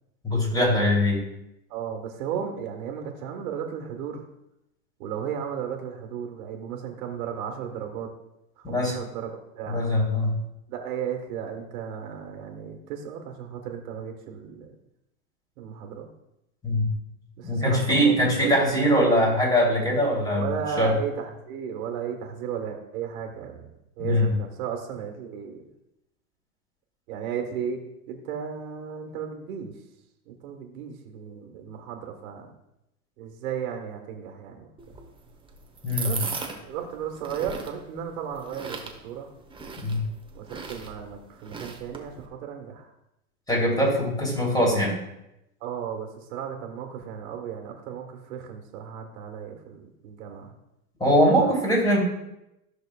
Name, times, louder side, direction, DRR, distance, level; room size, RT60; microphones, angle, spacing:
voice 1, 0.2-1.2 8.6-9.0 9.7-10.4 16.6-16.9 17.4-20.9 24.0-24.3 35.8-36.2 39.8-40.1 43.5-45.0 51.0-52.0, equal, 10° left, -2 dB, 3.2 m, -22 dB
voice 2, 1.7-4.2 5.0-8.1 8.6-9.9 10.7-14.7 15.6-16.1 17.4-18.1 18.4-19.2 20.3-25.6 27.1-27.8 28.1-29.7 30.3-32.5 33.2-35.0 36.0-36.4 36.6-39.3 40.3-42.9 45.6-50.5 51.3-51.5, right 8 dB, 70° right, 3 dB, 1.6 m, -35 dB
sound 1, 34.8-42.3, right 4 dB, 10° right, 1.0 m, -38 dB
14.0 x 6.3 x 2.4 m, 0.87 s
hypercardioid pair, 110°, 44 cm